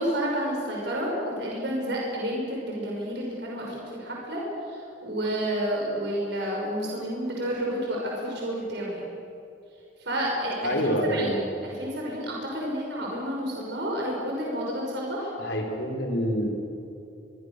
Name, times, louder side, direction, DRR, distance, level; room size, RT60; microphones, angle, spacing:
voice 1, 0.0-4.4 4.7-9.0 10.0-15.3, equal, 60° right, -2 dB, 6.0 m, -30 dB
voice 2, 10.6-11.5 15.4-16.5, equal, 65° left, 2 dB, 4.5 m, -26 dB
24.5 x 23.5 x 6.8 m, 2.8 s
head